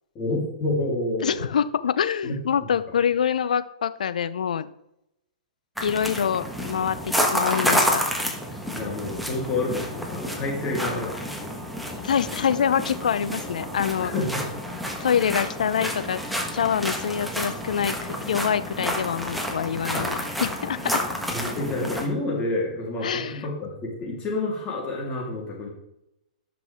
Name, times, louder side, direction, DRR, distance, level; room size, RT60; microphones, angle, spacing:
voice 1, 0.1-1.4 2.2-2.7 8.7-11.5 14.0-14.4 21.3-25.7, left 2 dB, 30° left, -3 dB, 3.3 m, -29 dB
voice 2, 1.2-4.7 5.8-8.0 12.0-14.1 15.0-16.2 16.5-21.0 23.0-23.4, left 8 dB, 75° left, 14 dB, 0.6 m, -25 dB
sound 1, 5.8-22.1, equal, ahead, 1.4 m, -29 dB
11.0 x 6.2 x 3.5 m, 0.81 s
hypercardioid pair, 130°, 4 cm